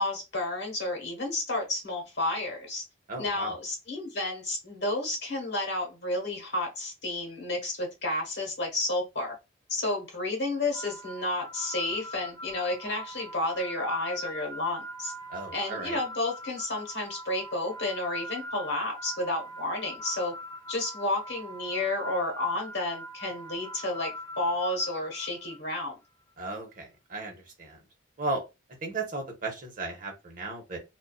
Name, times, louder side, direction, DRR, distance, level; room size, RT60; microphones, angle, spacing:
voice 1, 0.0-2.8 3.2-9.3 9.7-15.1 15.5-20.3 20.7-26.0, left 2 dB, 55° left, 1.2 m, -31 dB
voice 2, 3.1-3.5 15.3-16.0 26.4-27.8 28.2-28.4 28.8-30.8, right 2 dB, 45° right, 0.9 m, -35 dB
sound 1, 10.7-25.9, equal, 15° left, 0.3 m, -42 dB
2.5 x 2.4 x 2.3 m
head